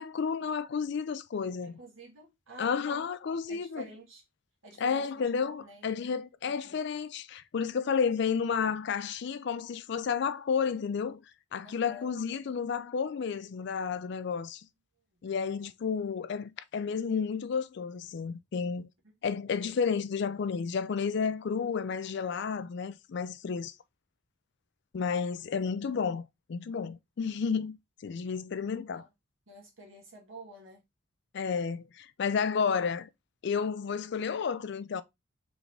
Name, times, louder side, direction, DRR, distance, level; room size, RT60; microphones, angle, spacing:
voice 1, 0.0-1.8 2.6-3.9 4.8-11.2 11.5-14.7 15.2-18.9 19.2-23.7 24.9-26.2 26.5-27.8 28.0-29.1 31.3-33.1 33.4-35.0, left 6 dB, 55° left, 0.4 m, -31 dB
voice 2, 1.6-3.1 3.5-4.2 4.6-5.3 5.6-5.9 6.4-6.8 11.6-12.1 15.4-15.6 28.6-29.1 29.5-30.8, right 2 dB, 70° right, 1.8 m, -50 dB
3.9 x 3.5 x 3.2 m
head